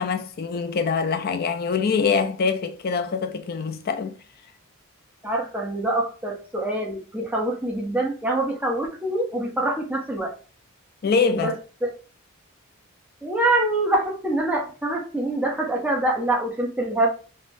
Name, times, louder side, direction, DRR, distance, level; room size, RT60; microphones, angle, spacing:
voice 1, 0.0-4.1 11.0-11.5, left 5 dB, 45° left, 0.4 m, -24 dB
voice 2, 5.2-10.3 11.3-11.5 11.8-11.9 13.2-17.1, right 1 dB, 5° right, 0.7 m, -25 dB
3.2 x 2.1 x 2.6 m
head